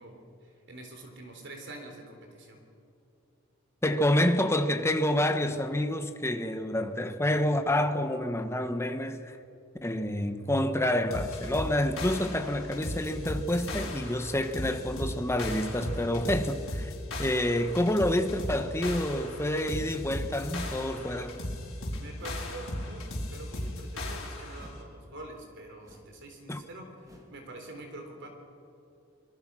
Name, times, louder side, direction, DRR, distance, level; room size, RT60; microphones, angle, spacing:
voice 1, 0.0-2.6 21.9-28.3, right 2 dB, 60° right, 4.0 m, -46 dB
voice 2, 3.8-9.4 9.8-16.9 17.2-21.4 26.5-26.6, left 1 dB, 15° left, 1.3 m, -28 dB
sound 1, 11.1-24.7, left 1 dB, 80° left, 5.1 m, -36 dB
sound 2, 22.1-22.6 23.0-23.5 24.5-24.9 25.8-26.2 27.0-27.4, equal, 15° right, 3.0 m, -55 dB
25.5 x 21.5 x 6.3 m
head